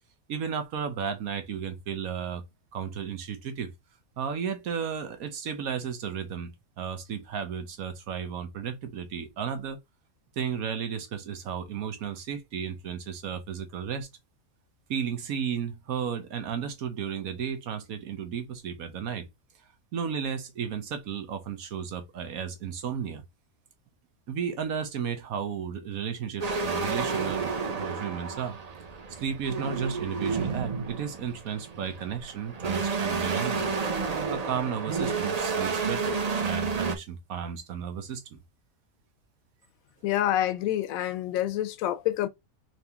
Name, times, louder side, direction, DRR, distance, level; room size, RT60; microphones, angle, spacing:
voice 1, 0.3-2.4 2.7-3.7 4.2-6.5 6.8-9.8 10.4-14.1 14.9-19.3 19.9-23.2 24.3-27.5 27.8-28.6 29.1-33.7 34.3-38.4, right 7 dB, 85° right, 1.4 m, -33 dB
sound 1, 26.4-37.0, right 4 dB, 40° right, 0.6 m, -30 dB
voice 2, 40.0-42.3, left 12 dB, 80° left, 1.0 m, -27 dB
3.9 x 3.0 x 3.4 m
omnidirectional pair, 1.4 m